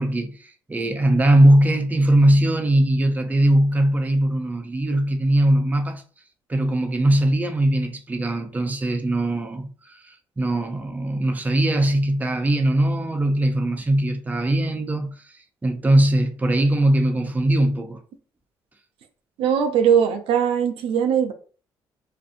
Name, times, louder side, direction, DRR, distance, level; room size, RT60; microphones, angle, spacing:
voice 1, 0.0-6.0 6.5-15.4 15.6-18.0, right 1 dB, 15° right, 0.5 m, -20 dB
voice 2, 19.4-21.3, right 8 dB, 80° right, 0.4 m, -20 dB
2.5 x 2.4 x 2.5 m
cardioid pair, 75°, 9 cm